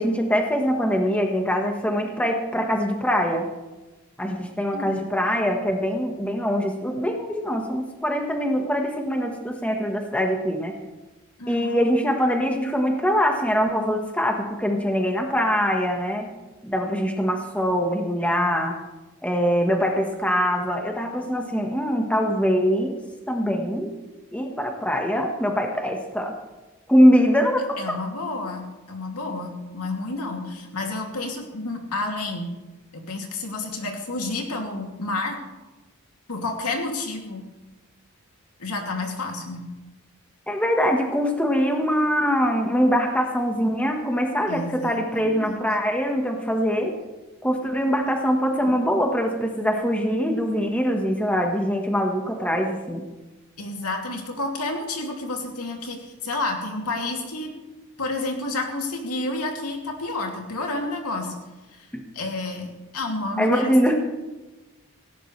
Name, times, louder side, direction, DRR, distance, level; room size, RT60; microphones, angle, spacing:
voice 1, 0.0-3.5 4.2-10.7 11.5-16.3 16.6-18.8 19.2-23.0 23.3-23.9 24.3-26.3 26.9-28.0 40.5-46.9 47.4-53.0 61.9-62.0 63.4-64.0, equal, 5° left, 2 dB, 1.4 m, -23 dB
voice 2, 11.4-11.8 27.8-32.5 32.9-35.4 36.3-37.4 38.6-39.7 44.5-45.6 53.6-57.5 58.0-61.3 61.7-61.9 62.1-63.7, left 2 dB, 90° left, 1 dB, 2.7 m, -30 dB
18.0 x 16.5 x 3.3 m, 1.1 s
head